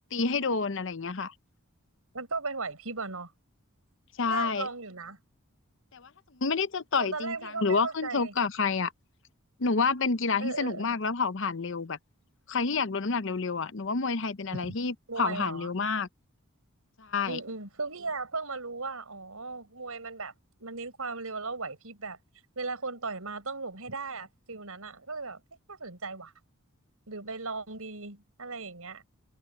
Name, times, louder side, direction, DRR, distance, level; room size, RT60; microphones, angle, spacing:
voice 1, 0.1-1.3 4.2-4.7 5.9-6.1 6.4-8.9 9.6-12.0 12.5-16.1 17.0-17.4, left 4 dB, 55° left, 0.7 m, -29 dB
voice 2, 2.1-3.3 4.3-5.2 6.9-8.3 10.4-10.8 14.5-14.7 15.1-15.7 17.3-20.3 20.6-22.2 22.5-25.4 25.7-26.3 27.1-29.0, right 3 dB, 75° right, 4.9 m, -37 dB
head